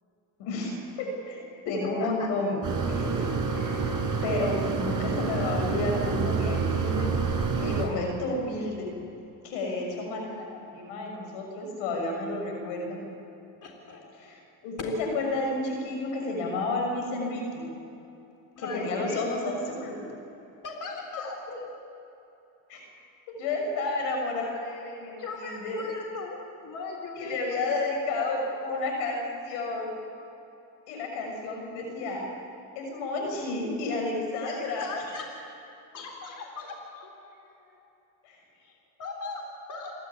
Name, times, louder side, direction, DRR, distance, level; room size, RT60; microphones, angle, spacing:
voice 1, 0.4-2.6 2.9-7.1 7.5-8.9 9.4-13.0 14.2-14.4 14.6-17.6 18.6-20.0 22.7-22.8 23.3-25.8 27.2-29.9 30.9-32.3 32.7-34.9 38.2-38.4, left 2 dB, 85° left, 1 dB, 6.5 m, -31 dB
voice 2, 1.8-2.3 4.4-4.6 13.6-14.1 18.5-19.2 20.6-21.7 23.7-23.9 25.2-28.0 34.4-35.3 35.9-37.9 38.5-39.9, left 3 dB, 45° left, 1 dB, 3.8 m, -39 dB
sound 1, 2.6-7.9, right 5 dB, 45° right, 7.2 m, -28 dB
28.0 x 12.5 x 9.7 m, 3.0 s
supercardioid pair, 90°, 43 cm